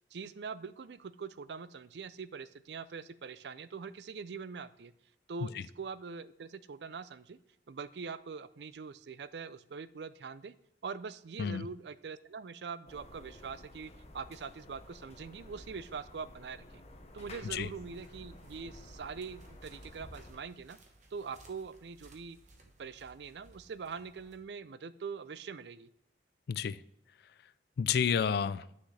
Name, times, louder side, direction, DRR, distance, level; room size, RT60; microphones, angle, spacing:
voice 1, 0.1-4.9 5.3-7.4 7.7-10.5 10.8-16.8 17.1-20.8 21.1-22.4 22.8-25.9, right 5 dB, 70° right, 15 dB, 0.4 m, -43 dB
sound 1, 12.9-20.3, left 1 dB, 40° left, 0.9 m, -52 dB
sound 2, 17.4-24.4, right 2 dB, 45° right, 1.2 m, -61 dB
voice 2, 26.5-26.8 27.8-28.7, left 7 dB, 60° left, 17 dB, 0.3 m, -31 dB
9.5 x 6.4 x 3.3 m, 0.80 s
head